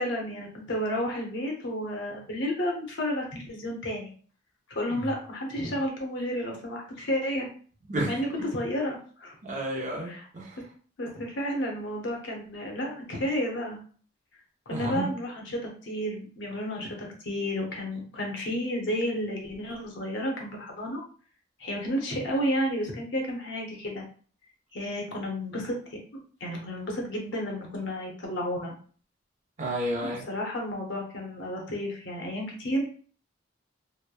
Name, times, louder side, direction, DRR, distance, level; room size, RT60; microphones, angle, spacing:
voice 1, 0.0-4.1 4.7-7.5 8.1-9.4 10.1-10.2 11.0-13.8 14.7-21.0 21.6-24.1 24.7-25.8 26.4-28.7 30.3-32.9, equal, 70° left, 0 dB, 0.8 m, -31 dB
voice 2, 9.4-10.6 14.7-15.1 29.6-30.2, right 1 dB, 40° right, -1 dB, 0.6 m, -31 dB
3.0 x 2.1 x 2.3 m, 0.43 s
head